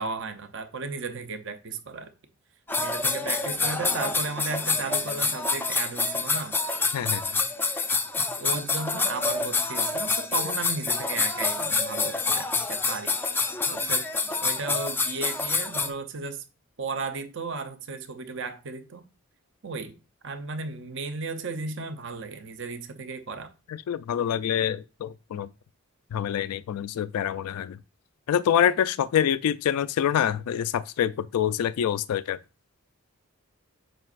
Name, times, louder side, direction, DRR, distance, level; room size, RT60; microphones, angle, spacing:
voice 1, 0.0-2.1 2.8-6.6 8.2-13.4 13.7-14.1 14.4-16.4 16.8-19.0 19.6-20.0 20.2-23.5, right 4 dB, 55° right, 0.7 m, -34 dB
sound 1, 2.7-15.9, left 4 dB, 10° left, 0.4 m, -27 dB
voice 2, 23.7-25.5 26.1-27.8 28.3-32.4, left 9 dB, 85° left, 0.3 m, -26 dB
7.6 x 5.1 x 2.4 m
head